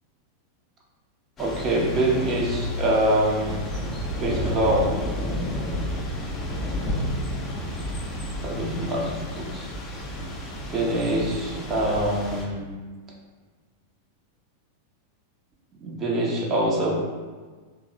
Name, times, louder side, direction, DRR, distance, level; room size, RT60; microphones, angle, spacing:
Thunder / Rain, 1.4-12.4, left 1 dB, 25° left, 0.5 m, -31 dB
voice 1, 1.4-3.6 4.2-4.9 8.4-9.7 10.7-12.7 15.8-16.9, right 1 dB, 30° right, -2 dB, 0.6 m, -24 dB
2.7 x 2.0 x 3.8 m, 1.4 s
figure-of-eight pair, 90°, 0 cm